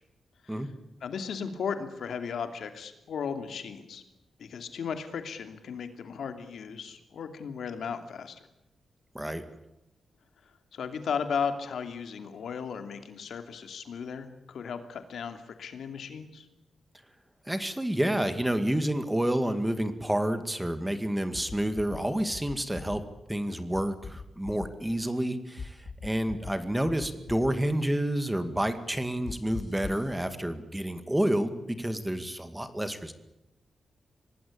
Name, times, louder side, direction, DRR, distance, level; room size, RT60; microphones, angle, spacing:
voice 1, 1.0-4.0 4.4-8.4 10.7-16.5, left 6 dB, 75° left, 7 dB, 2.8 m, -36 dB
voice 2, 17.5-23.0 23.3-33.1, right 1 dB, 10° right, 9 dB, 2.1 m, -29 dB
sound 1, 21.3-22.0 22.3-23.0 23.7-24.7 25.6-26.5 26.8-27.5 29.3-30.1, left 4 dB, 50° left, 2.3 m, -40 dB
25.5 x 19.0 x 8.7 m, 0.90 s
wide cardioid pair, 125°, 0 cm